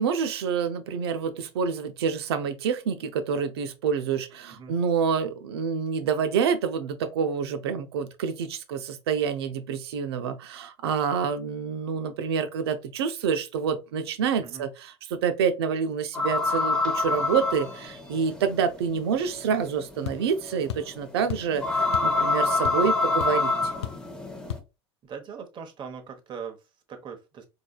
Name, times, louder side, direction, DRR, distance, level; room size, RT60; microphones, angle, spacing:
voice 1, 0.0-23.5, right 6 dB, 70° right, 0.6 m, -27 dB
sound 1, 16.1-24.6, left 3 dB, 5° left, 0.9 m, -27 dB
sound 2, 20.0-20.2 20.7-20.9 21.3-21.5 21.9-22.2 22.4-22.9 23.2-23.3 23.8-24.1 24.5-24.7, left 10 dB, 80° left, 0.4 m, -34 dB
voice 2, 25.0-27.4, right 6 dB, 35° right, 1.0 m, -40 dB
4.5 x 2.8 x 2.3 m
hypercardioid pair, 80°, 14 cm